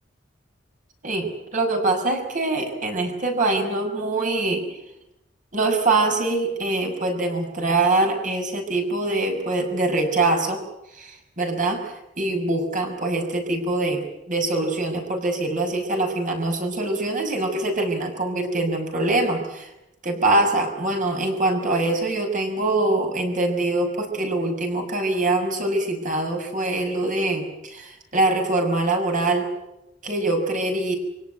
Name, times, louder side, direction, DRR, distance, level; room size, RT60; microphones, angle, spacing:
voice 1, 1.0-4.6 5.5-10.6 10.9-19.7 20.0-29.5 30.0-31.0, right 2 dB, 45° right, 3 dB, 6.2 m, -24 dB
26.0 x 17.5 x 9.5 m, 0.89 s
head